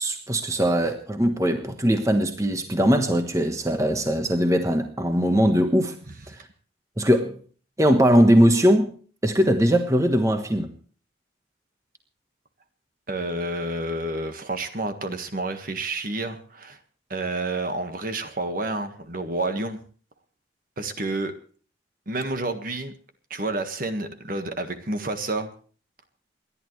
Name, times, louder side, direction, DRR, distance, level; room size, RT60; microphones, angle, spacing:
voice 1, 0.0-5.9 6.3-6.4 7.0-7.4 7.8-8.9 9.2-10.7, equal, 15° right, 6 dB, 1.3 m, -20 dB
voice 2, 13.1-16.8 17.1-19.8 20.8-21.3 22.1-22.9 23.3-25.5, right 2 dB, 45° right, 8 dB, 1.6 m, -29 dB
28.5 x 11.5 x 3.2 m, 0.42 s
head